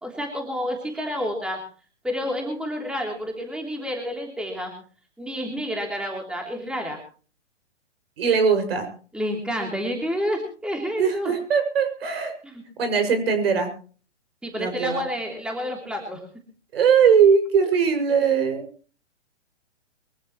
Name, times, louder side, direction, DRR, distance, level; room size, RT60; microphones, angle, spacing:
voice 1, 0.0-1.6 2.0-4.7 5.2-7.0 9.1-11.3 12.4-12.5 14.4-16.2, equal, 5° right, 1 dB, 3.2 m, -29 dB
voice 2, 8.2-8.9 11.0-12.3 12.8-13.7 14.6-15.0 16.7-18.7, right 6 dB, 55° right, 7 dB, 6.3 m, -20 dB
24.0 x 15.0 x 3.1 m, 0.40 s
figure-of-eight pair, 125°, 35 cm